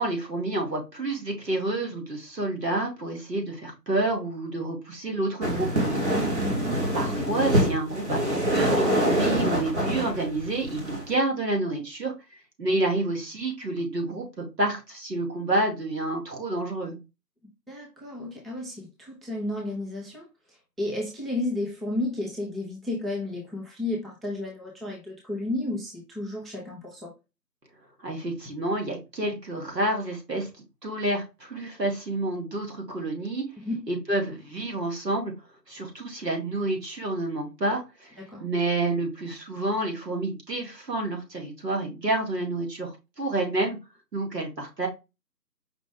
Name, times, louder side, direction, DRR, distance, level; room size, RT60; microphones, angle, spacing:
voice 1, 0.0-5.7 6.9-12.1 12.6-17.0 28.0-30.5 30.8-33.4 33.9-35.3 35.7-38.1 38.4-43.8 44.1-44.9, right 2 dB, 75° right, 1.7 m, -29 dB
sound 1, 5.4-11.1, equal, 40° right, 1.2 m, -25 dB
voice 2, 6.1-6.6 17.7-27.1 33.6-33.8 38.2-38.4, left 2 dB, ahead, 0.5 m, -33 dB
4.9 x 2.3 x 3.6 m
figure-of-eight pair, 160°, 50 cm